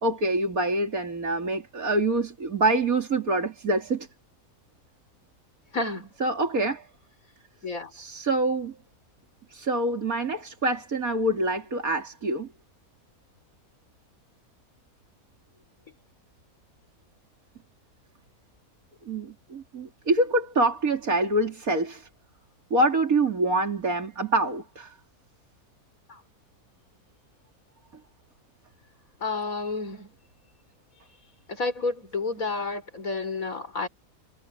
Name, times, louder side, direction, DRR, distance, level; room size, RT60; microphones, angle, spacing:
voice 1, 0.0-4.1 6.2-6.9 7.9-8.8 9.5-12.5 19.1-22.1 22.7-25.0, right 2 dB, 70° right, 3.5 m, -25 dB
voice 2, 5.7-6.1 7.6-7.9 26.1-26.2 29.2-30.1 31.5-33.9, left 3 dB, 65° left, 5.0 m, -30 dB
omnidirectional pair, 1.6 m